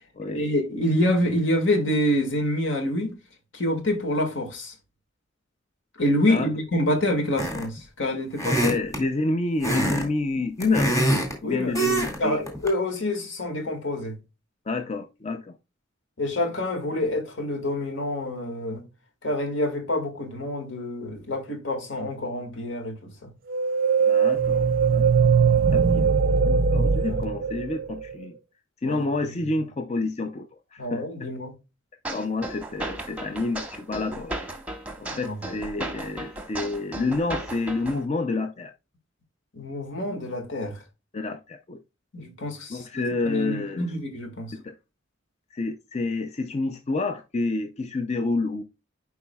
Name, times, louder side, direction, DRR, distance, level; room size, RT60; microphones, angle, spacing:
voice 1, 0.3-3.1 3.5-4.7 6.0-8.7 11.4-14.2 16.2-18.8 19.2-23.3 27.0-27.2 28.8-29.3 30.8-31.5 35.2-35.6 39.5-40.8 42.1-42.9 43.3-44.5, left 1 dB, 70° left, 1.9 m, -27 dB
wood creaks, 7.4-7.8 8.4-9.0 9.6-10.0 10.4-11.3 11.7-12.2 12.5-12.7, right 1 dB, 15° left, 2.2 m, -24 dB
voice 2, 8.6-10.9 11.4-12.4 14.7-15.6 24.1-25.2 25.7-26.0 26.4-28.4 28.8-31.3 32.1-34.3 35.0-38.7 41.1-41.8 42.7-43.9 44.5-44.7 45.5-48.6, left 3 dB, 35° left, 0.5 m, -29 dB
Long howl) whale and monster, 23.5-28.1, right 5 dB, 45° right, 0.4 m, -21 dB
Metallic synth sequence, 32.0-38.0, right 1 dB, 5° right, 1.0 m, -35 dB
11.0 x 4.7 x 2.3 m
head